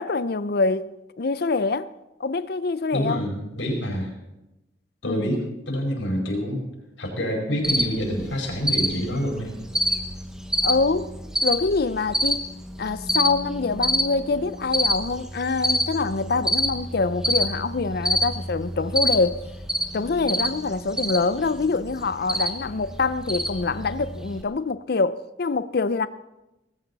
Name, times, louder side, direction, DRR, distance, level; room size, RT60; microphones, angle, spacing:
voice 1, 0.0-1.9 2.2-3.2 5.0-5.3 10.6-11.1 11.4-12.5 12.8-19.4 19.9-26.1, left 4 dB, 55° left, 0.5 m, -25 dB
voice 2, 2.9-4.1 5.0-6.6 7.0-9.5, equal, 85° left, 4.8 m, -27 dB
Cricket, 7.6-24.4, equal, 5° right, 1.1 m, -28 dB
18.5 x 15.5 x 4.1 m
head